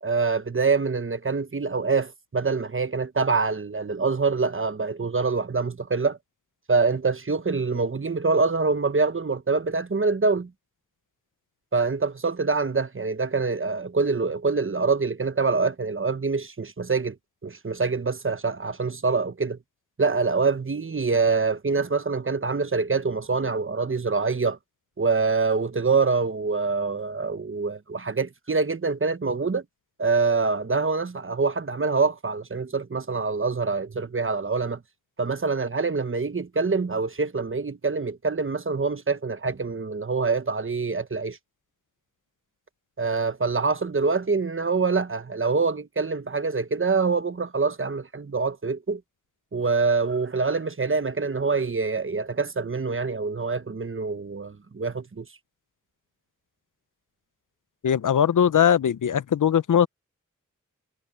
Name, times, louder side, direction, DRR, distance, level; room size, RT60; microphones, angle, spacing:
voice 1, 0.0-6.2 6.7-10.5 11.7-17.1 17.4-19.6 20.0-24.6 25.0-29.6 30.0-34.8 35.2-41.4 43.0-49.0 49.5-55.3, right 4 dB, 40° right, 1.2 m, -25 dB
voice 2, 57.8-59.9, left 8 dB, 70° left, 0.7 m, -20 dB
cardioid pair, 45°, 32 cm